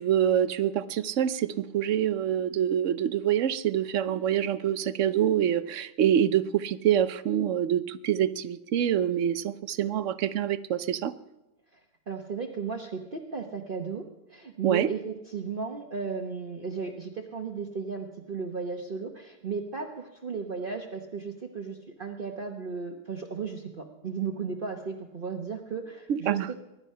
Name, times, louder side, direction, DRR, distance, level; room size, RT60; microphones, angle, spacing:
voice 1, 0.0-11.1 14.6-14.9 26.1-26.5, right 10 dB, 60° right, 14 dB, 1.0 m, -26 dB
voice 2, 12.1-26.6, right 5 dB, 40° right, 2 dB, 1.2 m, -35 dB
23.0 x 11.5 x 5.6 m, 0.97 s
omnidirectional pair, 1.6 m